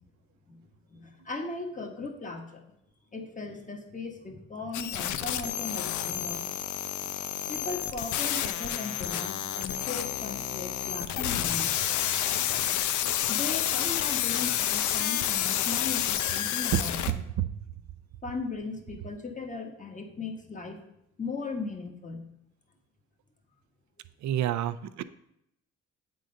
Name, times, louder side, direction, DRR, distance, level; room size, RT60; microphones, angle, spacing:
voice 1, 0.9-2.6 3.1-6.4 7.5-11.9 13.3-17.2 18.2-20.8 21.2-22.3, left 3 dB, 25° left, 3 dB, 1.3 m, -37 dB
sound 1, 4.7-17.1, left 11 dB, 75° left, 0.5 m, -29 dB
voice 2, 24.2-25.0, right 11 dB, 70° right, 13 dB, 0.5 m, -29 dB
8.2 x 3.8 x 5.3 m, 0.80 s
cardioid pair, 90°, 30 cm